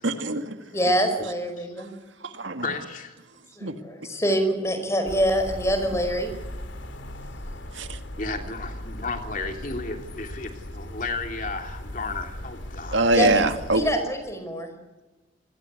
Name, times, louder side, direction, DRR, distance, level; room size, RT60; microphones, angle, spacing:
voice 1, 0.0-0.6 2.2-2.7 3.6-3.8 7.7-8.0 12.9-13.9, right 2 dB, 80° right, 7 dB, 2.0 m, -23 dB
voice 2, 0.7-1.9 3.6-6.4 13.1-13.3 13.7-14.7, equal, 15° left, 7 dB, 5.1 m, -25 dB
voice 3, 2.6-3.1 8.2-13.1, left 3 dB, 45° left, 4 dB, 3.2 m, -33 dB
sound 1, 5.0-13.9, left 1 dB, 80° left, 2.8 m, -38 dB
27.5 x 21.5 x 8.3 m, 1.1 s
head